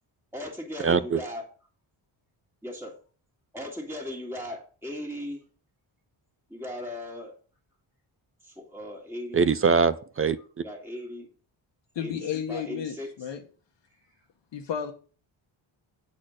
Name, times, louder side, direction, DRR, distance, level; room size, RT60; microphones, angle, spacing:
voice 1, 0.3-1.4 2.6-3.0 3.5-5.4 6.5-7.3 8.4-9.4 10.6-11.3 12.0-12.2 12.5-13.1, left 1 dB, 5° right, 2.0 m, -37 dB
voice 2, 0.8-1.2 9.3-10.6, right 5 dB, 30° right, 0.4 m, -23 dB
voice 3, 11.9-13.4 14.5-14.9, left 8 dB, 60° left, 1.1 m, -32 dB
8.7 x 4.3 x 6.4 m
wide cardioid pair, 150°, 48 cm